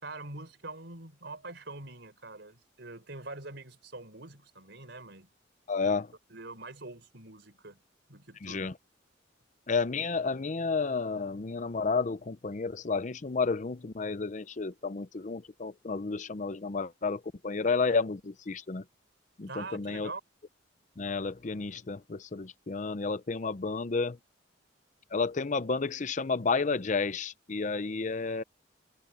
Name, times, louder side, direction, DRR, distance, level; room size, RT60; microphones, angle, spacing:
voice 1, 0.0-5.3 6.3-7.8 8.1-8.7 19.5-20.2, right 2 dB, 60° right, 4.6 m, -44 dB
voice 2, 5.7-6.1 8.4-8.7 9.7-18.8 19.4-20.1 21.0-24.2 25.1-28.4, left 4 dB, 40° left, 0.6 m, -31 dB
head